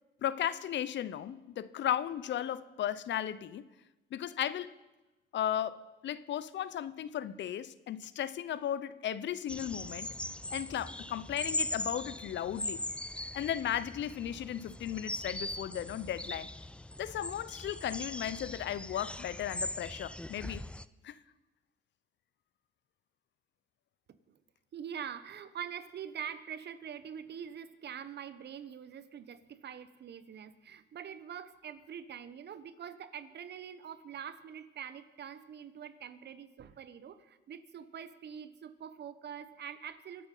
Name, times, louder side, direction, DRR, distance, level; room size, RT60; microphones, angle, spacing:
voice 1, 0.2-3.7 4.1-4.7 5.3-10.1 10.5-12.8 13.3-16.5 17.0-20.6 21.0-21.2, left 10 dB, 65° left, 0.7 m, -35 dB
sound 1, 9.5-20.9, left 1 dB, 5° left, 0.5 m, -40 dB
voice 2, 24.7-40.3, right 8 dB, 60° right, 1.1 m, -44 dB
25.0 x 8.7 x 5.5 m
cardioid pair, 90°, 20 cm